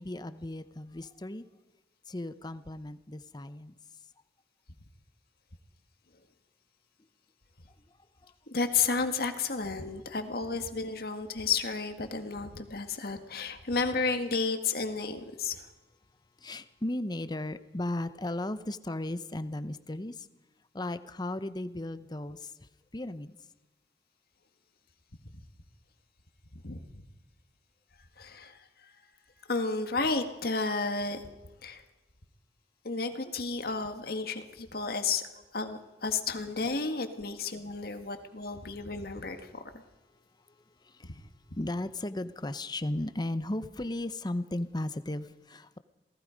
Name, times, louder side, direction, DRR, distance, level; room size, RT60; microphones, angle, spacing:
voice 1, 0.0-1.4 2.1-3.8 8.2-8.3 16.4-20.3 20.7-22.5 22.9-23.4 40.8-41.3 41.6-45.8, left 1 dB, 25° left, 12 dB, 0.8 m, -35 dB
voice 2, 8.5-15.7 25.2-25.3 26.5-27.0 28.2-28.6 29.5-31.2 31.6-31.8 32.8-35.2 35.5-39.6, left 4 dB, 60° left, 7 dB, 1.8 m, -32 dB
28.0 x 18.0 x 5.2 m, 1.1 s
head